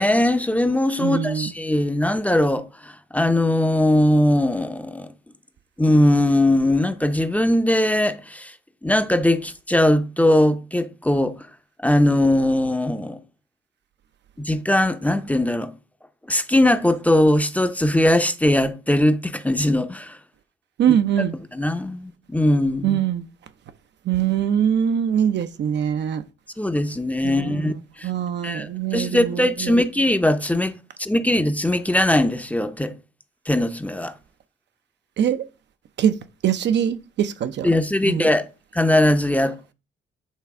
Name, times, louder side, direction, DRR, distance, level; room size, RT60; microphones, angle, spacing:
voice 1, 0.0-5.1 5.8-8.5 8.8-11.3 11.8-13.2 14.4-15.7 16.3-20.2 20.9-21.0 21.5-23.0 26.6-27.7 28.0-28.1 28.4-32.9 33.5-34.1 37.6-38.4 38.7-39.7, left 1 dB, 5° left, 0.6 m, -20 dB
voice 2, 1.0-1.5 20.8-21.3 22.8-23.2 24.1-26.2 27.2-29.8 35.2-35.5 36.0-36.2 36.4-37.7 38.0-38.3, right 9 dB, 60° right, 0.6 m, -23 dB
8.2 x 3.3 x 4.8 m
cardioid pair, 90°, 20 cm